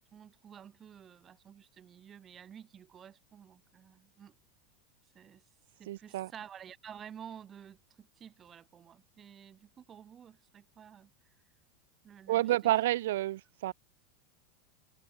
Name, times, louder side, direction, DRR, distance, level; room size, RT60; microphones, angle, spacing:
voice 1, 0.0-4.3 5.1-5.4 5.8-11.3 12.0-12.7, right 8 dB, 25° right, 2.4 m, -51 dB
voice 2, 5.9-6.3 12.3-13.7, right 15 dB, 75° right, 1.3 m, -29 dB
supercardioid pair, 150°, 0 cm